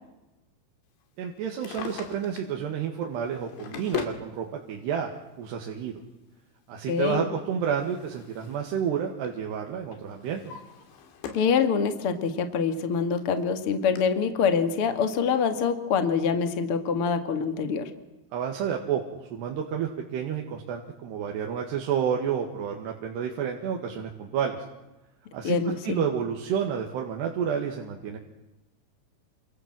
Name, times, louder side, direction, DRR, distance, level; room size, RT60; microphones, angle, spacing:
voice 1, 1.2-5.1 5.4-6.0 6.7-10.4 18.3-24.6 25.3-25.6 25.8-28.2, right 8 dB, 65° right, 1 dB, 3.8 m, -30 dB
Drawer open or close, 1.4-2.6 3.3-4.2 5.3-5.4 7.2-8.7 9.0-9.4 9.9-11.6 12.0-12.1 12.8-12.9 13.2-13.3 14.0-14.1, left 9 dB, 70° left, 4.6 m, -39 dB
voice 2, 6.9-7.2 11.3-17.9 25.4-26.0, left 6 dB, 45° left, 8 dB, 1.8 m, -25 dB
28.5 x 26.5 x 7.8 m, 1.0 s
omnidirectional pair, 5.6 m